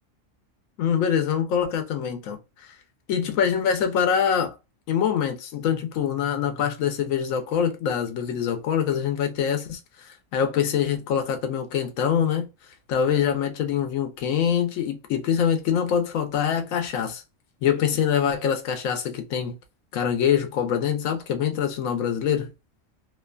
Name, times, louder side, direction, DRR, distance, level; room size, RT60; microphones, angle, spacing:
voice 1, 0.8-2.4 2.7-2.8 3.1-4.5 4.9-12.5 12.9-17.2 17.6-19.5 19.9-22.5, left 8 dB, 85° left, 1.0 m, -24 dB
2.7 x 2.2 x 2.3 m
omnidirectional pair, 1.4 m